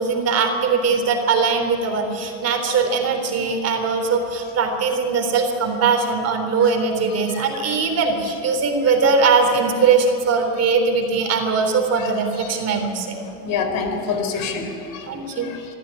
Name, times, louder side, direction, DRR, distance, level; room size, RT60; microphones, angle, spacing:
voice 1, 0.0-13.2 15.1-15.5, right 5 dB, 35° right, 5 dB, 3.8 m, -20 dB
voice 2, 13.4-15.1 15.3-15.7, left 5 dB, 50° left, 6 dB, 4.1 m, -26 dB
24.5 x 14.5 x 9.8 m, 3.0 s
supercardioid pair, 120°, 41 cm